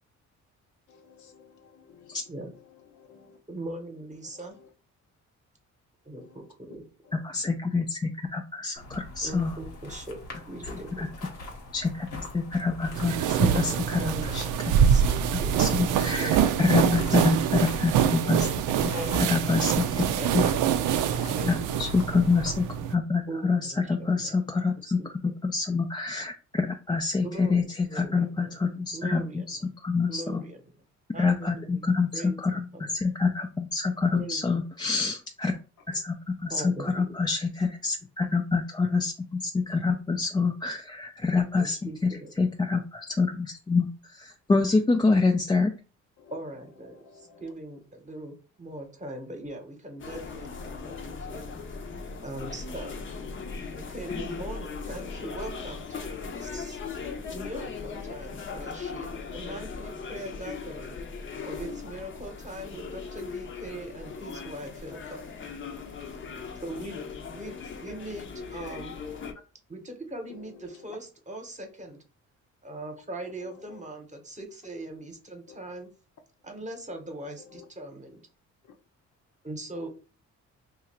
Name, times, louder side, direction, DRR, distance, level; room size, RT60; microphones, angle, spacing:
voice 1, 0.9-2.2 2.5-3.4 4.2-4.7 6.2-6.4 7.0-7.3 10.3-10.4 15.1-15.2 31.2-31.3 35.9-36.0 46.2-47.5 53.1-53.4 54.6-54.9 57.3-57.4 57.9-58.5 64.3-64.4 67.2-67.8 70.3-71.0 73.4-73.8 75.5-75.6 77.5-77.7 78.6-78.7 79.7-79.9, left 6 dB, 70° left, 5 dB, 0.8 m, -52 dB
voice 2, 3.5-4.5 6.0-6.9 9.2-10.2 10.5-11.0 13.3-14.5 14.8-15.1 15.4-16.5 18.9-19.7 20.1-20.9 21.3-21.7 23.3-24.3 24.8-25.1 27.2-29.7 30.1-30.6 31.1-31.9 32.1-32.4 32.7-33.0 34.1-34.4 36.5-37.2 41.6-42.3 46.3-51.5 52.2-52.9 53.7-56.8 57.3-61.0 61.4-65.2 66.6-68.9 69.7-72.0 72.6-75.9 76.4-78.2 79.4-79.9, right 1 dB, 25° right, 4 dB, 1.0 m, -40 dB
voice 3, 7.1-9.5 11.0-11.1 11.7-12.1 12.3-14.4 15.6-16.3 16.6-18.5 18.8-18.9 19.3-20.5 21.5-25.0 25.4-27.6 27.9-30.4 31.2-35.5 35.9-36.1 36.4-41.8 42.0-42.1 42.4-45.7, left 4 dB, 15° left, 3 dB, 0.3 m, -26 dB
sound 1, 8.8-22.6, left 2 dB, 85° left, 1.2 m, -41 dB
sound 2, 12.9-22.9, right 9 dB, 85° right, 0.5 m, -25 dB
sound 3, 50.0-69.3, left 5 dB, 40° left, 0.7 m, -38 dB
2.8 x 2.4 x 4.2 m, 0.35 s
cardioid pair, 90°, 30 cm